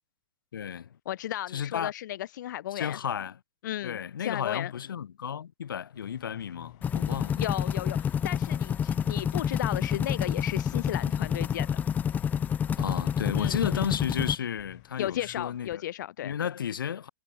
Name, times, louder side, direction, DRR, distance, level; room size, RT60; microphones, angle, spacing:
voice 1, 0.5-0.9 1.5-1.9 2.7-3.4 3.8-7.4 12.8-15.8 16.2-17.1, left 8 dB, 85° left, 3.0 m, -33 dB
voice 2, 1.1-3.0 3.6-4.7 7.3-11.7 13.4-14.0 15.0-16.3, left 13 dB, 60° left, 2.0 m, -34 dB
sound 1, 5.9-15.8, left 40 dB or more, 40° left, 5.1 m, -50 dB
sound 2, 6.8-14.4, left 8 dB, 15° left, 0.8 m, -28 dB
hypercardioid pair, 145°, 11 cm